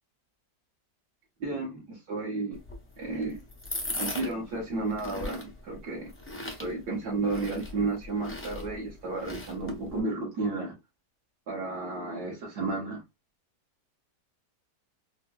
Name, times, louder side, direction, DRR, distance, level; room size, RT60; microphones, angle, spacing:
voice 1, 1.4-2.6 3.0-3.4 4.0-6.1 6.6-10.7 11.5-13.0, right 3 dB, 65° right, 1.7 m, -32 dB
sound 1, 2.5-10.0, left 2 dB, 15° left, 0.4 m, -39 dB
4.4 x 2.3 x 2.3 m
omnidirectional pair, 1.8 m